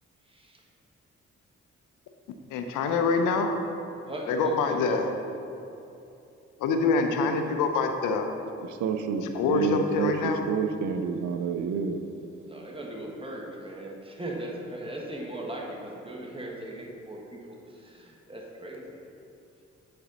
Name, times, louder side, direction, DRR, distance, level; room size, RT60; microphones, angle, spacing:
voice 1, 0.2-0.6 4.0-5.0 12.5-19.0, right 1 dB, 15° right, -1 dB, 1.5 m, -38 dB
voice 2, 2.5-3.5 4.3-5.1 6.6-8.3 9.3-10.4, left 4 dB, 85° left, 5 dB, 0.6 m, -25 dB
voice 3, 8.6-12.0, right 5 dB, 70° right, 7 dB, 0.6 m, -29 dB
9.7 x 4.2 x 4.0 m, 2.8 s
supercardioid pair, 50°, 30 cm